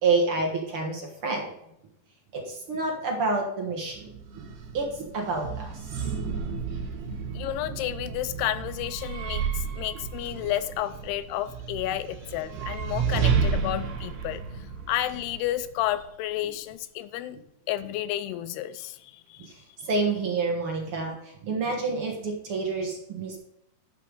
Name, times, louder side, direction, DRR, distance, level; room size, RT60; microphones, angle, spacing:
voice 1, 0.0-1.5 2.3-4.1 4.3-4.4 4.7-6.1 6.9-7.3 19.4-19.5 19.8-23.4, right 3 dB, 60° right, 1 dB, 1.4 m, -28 dB
sound 1, 3.9-16.0, right 6 dB, 80° right, 3.2 m, -32 dB
voice 2, 7.3-17.4 17.7-19.5 19.8-19.9, left 13 dB, 85° left, 13 dB, 2.5 m, -31 dB
11.5 x 5.7 x 5.3 m, 0.79 s
omnidirectional pair, 4.7 m